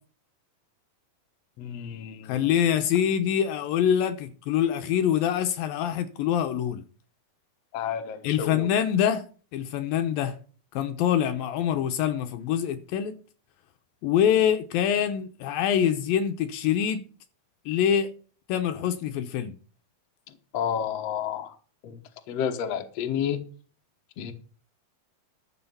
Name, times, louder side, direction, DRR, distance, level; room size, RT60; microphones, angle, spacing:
voice 1, 1.6-2.4 7.7-8.7 20.5-21.6 21.8-22.0 22.3-23.4 24.2-24.3, left 8 dB, 60° left, 1.7 m, -30 dB
voice 2, 2.2-6.8 8.2-9.2 9.5-10.3 10.7-13.2 14.0-17.0 17.7-18.1 18.5-19.6, left 9 dB, 80° left, 2.4 m, -25 dB
12.5 x 7.1 x 5.6 m
omnidirectional pair, 4.5 m